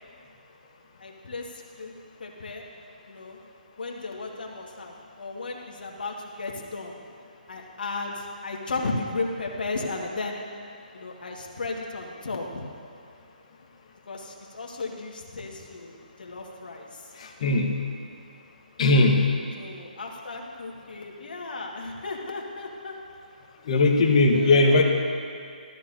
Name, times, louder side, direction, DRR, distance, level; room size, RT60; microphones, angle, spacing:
voice 1, 1.0-1.9 2.2-2.6 3.1-3.4 3.8-7.0 7.5-10.4 10.9-12.7 14.1-17.1 19.6-22.9 24.3-24.8, left 3 dB, 70° left, -1 dB, 1.8 m, -35 dB
voice 2, 17.2-17.7 18.8-19.2 23.6-24.8, left 2 dB, 45° left, 1 dB, 1.2 m, -19 dB
13.5 x 13.0 x 2.7 m, 2.4 s
hypercardioid pair, 155°, 5 cm